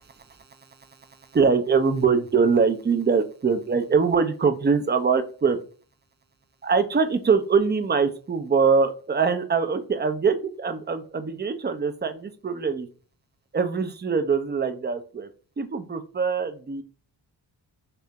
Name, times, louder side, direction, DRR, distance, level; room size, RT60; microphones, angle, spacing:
voice 1, 1.3-5.6 6.6-12.9 13.5-15.3 15.6-16.8, right 5 dB, 20° right, 9 dB, 0.6 m, -23 dB
3.3 x 2.7 x 3.6 m, 0.38 s
supercardioid pair, 50°, 46 cm